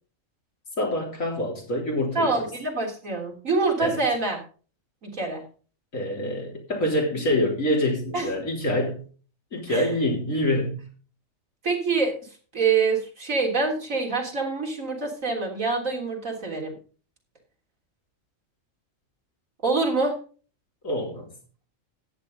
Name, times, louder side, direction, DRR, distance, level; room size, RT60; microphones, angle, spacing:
voice 1, 0.8-2.5 3.8-4.0 5.9-9.0 9.5-10.9 20.8-21.3, left 1 dB, 85° left, 0 dB, 4.0 m, -26 dB
voice 2, 2.2-4.4 5.0-5.4 8.1-8.3 9.7-9.9 11.6-12.1 12.5-16.7 19.6-20.2, right 4 dB, 85° right, 1 dB, 3.8 m, -25 dB
14.0 x 9.4 x 3.9 m, 0.39 s
omnidirectional pair, 1.3 m